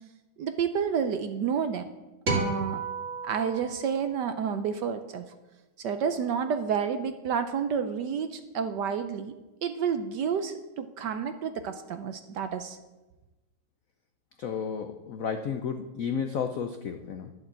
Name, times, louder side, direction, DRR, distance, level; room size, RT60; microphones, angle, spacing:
voice 1, 0.4-1.9 2.3-2.8 3.2-5.2 5.8-9.3 9.6-12.8, right 7 dB, 65° right, 9 dB, 1.1 m, -30 dB
sound 1, 2.3-4.7, right 3 dB, 35° right, 2.4 m, -33 dB
voice 2, 14.4-17.3, left 6 dB, 85° left, 7 dB, 0.7 m, -32 dB
11.0 x 7.8 x 7.5 m, 1.1 s
omnidirectional pair, 2.4 m